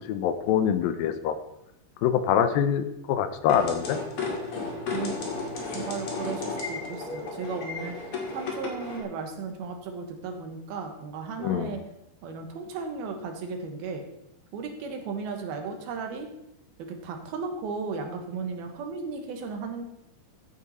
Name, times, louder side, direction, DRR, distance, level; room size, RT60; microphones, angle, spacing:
voice 1, 0.1-1.4 2.0-4.0 11.4-11.8, left 9 dB, 80° left, 10 dB, 2.5 m, -25 dB
sound 1, 3.5-9.0, left 3 dB, 45° left, 2.7 m, -33 dB
voice 2, 5.7-11.8 12.2-14.0 14.5-16.3 16.9-19.8, right 4 dB, 85° right, 5 dB, 3.4 m, -35 dB
14.0 x 9.3 x 4.2 m, 0.83 s
omnidirectional pair, 4.2 m